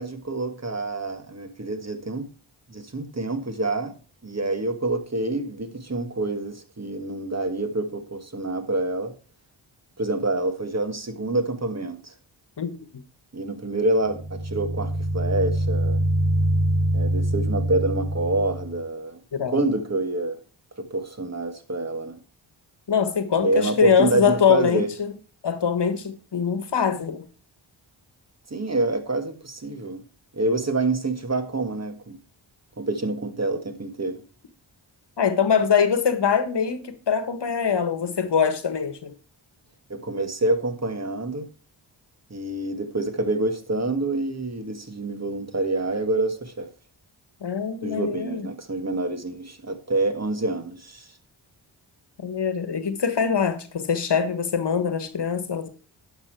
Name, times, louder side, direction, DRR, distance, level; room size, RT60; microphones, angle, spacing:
voice 1, 0.0-2.3 2.7-3.9 4.2-9.1 10.0-12.1 13.3-16.0 16.9-19.2 19.5-20.4 20.8-22.2 23.4-24.9 28.5-30.0 30.3-32.2 32.8-34.2 39.9-41.5 42.3-46.7 47.8-51.1, right 2 dB, 35° right, 1.6 m, -27 dB
sound 1, 14.1-18.8, right 1 dB, 10° left, 1.2 m, -24 dB
voice 2, 22.9-25.1 25.4-27.2 35.2-39.1 47.4-48.5 52.2-55.7, left 6 dB, 60° left, 1.4 m, -23 dB
10.5 x 5.9 x 4.6 m
cardioid pair, 45°, 48 cm